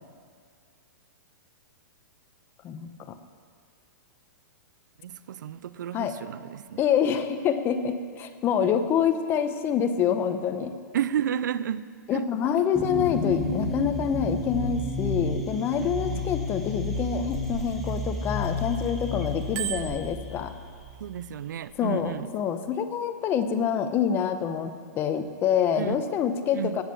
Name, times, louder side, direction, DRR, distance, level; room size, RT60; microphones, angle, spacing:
voice 1, 2.6-3.1 5.9-6.1 6.8-10.7 12.1-20.5 21.8-26.8, left 8 dB, 20° left, 0.8 m, -26 dB
voice 2, 5.0-6.8 10.9-12.3 15.8-16.2 21.0-22.3 25.8-26.0 26.5-26.8, right 9 dB, 75° right, 0.5 m, -32 dB
sound 1, 12.7-21.3, left 2 dB, ahead, 1.5 m, -31 dB
Bicycle bell, 17.0-18.9 19.3-20.9 21.6-21.8, right 11 dB, 35° right, 0.7 m, -37 dB
18.5 x 7.3 x 7.0 m
hypercardioid pair, 150°, 10 cm